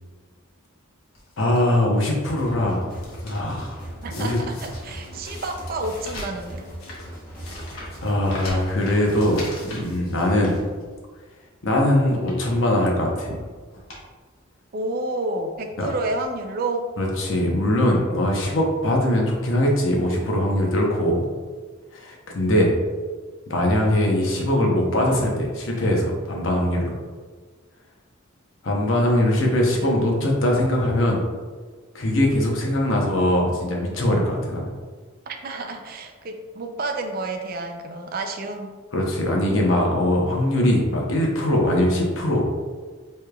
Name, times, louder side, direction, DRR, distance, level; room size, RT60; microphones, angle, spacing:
sound 1, 1.1-1.6 2.1-2.5 2.7-3.7 4.1-11.2 11.6-11.7 12.1-12.5 13.3-13.4 13.7-14.1 14.4-14.5 15.4-15.5 15.9-16.4 17.1-17.2 17.4-17.5, left 1 dB, 80° left, 1.1 m, -40 dB
voice 1, 1.4-2.9 3.2-3.8 4.1-4.4 8.0-10.6 11.6-13.3 15.8-15.9 17.0-21.2 21.9-22.7 23.5-26.9 28.6-31.2 31.9-34.7 38.9-42.5, left 1 dB, 65° left, -1 dB, 0.8 m, -21 dB
sound 2, 2.2-9.3, right 1 dB, 45° left, 1.1 m, -39 dB
voice 2, 4.0-6.6 14.7-16.9 35.3-38.7, right 2 dB, 45° right, 5 dB, 0.4 m, -30 dB
4.8 x 3.2 x 2.3 m, 1.5 s
head